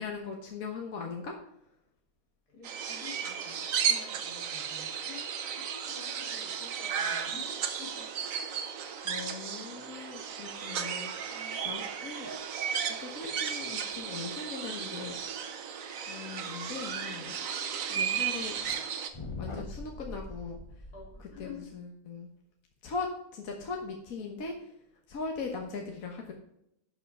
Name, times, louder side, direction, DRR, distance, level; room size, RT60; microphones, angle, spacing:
voice 1, 0.0-1.4 9.0-11.3 11.6-12.3 12.8-15.2 16.1-17.4 17.9-18.6 19.4-20.6 21.4-22.3 22.8-24.6 25.1-26.3, left 4 dB, 60° left, 1 dB, 1.6 m, -39 dB
voice 2, 2.5-8.1 11.3-11.6 20.9-21.7, left 5 dB, 80° left, 1 dB, 3.3 m, -49 dB
sound 1, 2.6-19.1, right 7 dB, 60° right, 1.2 m, -34 dB
sound 2, 18.3-18.8 19.1-21.7, left 2 dB, 20° left, 1.1 m, -42 dB
11.5 x 5.7 x 5.4 m, 0.78 s
omnidirectional pair, 1.6 m